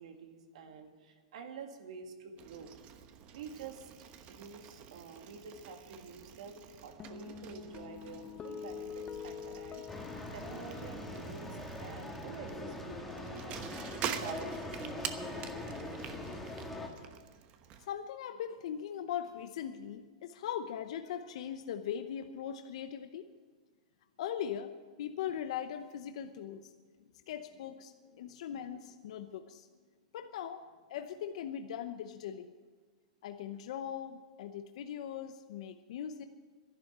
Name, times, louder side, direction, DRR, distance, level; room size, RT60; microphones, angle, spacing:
voice 1, 0.0-2.7 3.3-3.9 4.3-15.4, right 5 dB, 70° right, 5 dB, 2.1 m, -48 dB
Bicycle, 2.4-17.9, right 8 dB, 35° right, 1.1 m, -47 dB
sound 1, 7.0-13.6, left 7 dB, 20° left, 0.6 m, -47 dB
sound 2, 9.9-16.9, left 1 dB, 5° left, 1.7 m, -42 dB
voice 2, 17.8-23.3 24.2-24.7 25.0-26.6 27.3-29.7 30.1-30.6 30.9-32.5 33.2-36.2, left 9 dB, 65° left, 8 dB, 0.8 m, -40 dB
12.0 x 11.0 x 8.0 m, 1.4 s
hypercardioid pair, 140°, 4 cm